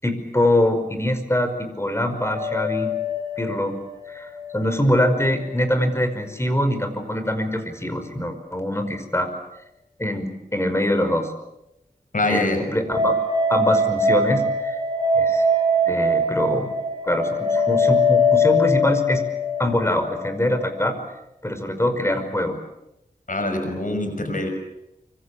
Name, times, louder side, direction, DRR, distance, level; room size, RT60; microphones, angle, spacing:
voice 1, 0.0-2.9 3.4-3.8 4.1-9.3 10.0-11.3 12.3-13.1 13.5-14.8 15.2-15.5 15.9-16.7 17.0-19.2 19.6-20.9 21.4-22.6, left 1 dB, 15° left, 8 dB, 5.4 m, -23 dB
sound 1, 2.2-5.4 5.6-5.7 12.9-20.8, left 1 dB, 25° right, 7.4 m, -22 dB
voice 2, 12.1-12.6 23.3-24.5, left 2 dB, 60° left, 6 dB, 6.3 m, -24 dB
25.0 x 25.0 x 8.6 m, 0.88 s
wide cardioid pair, 65°, 16 cm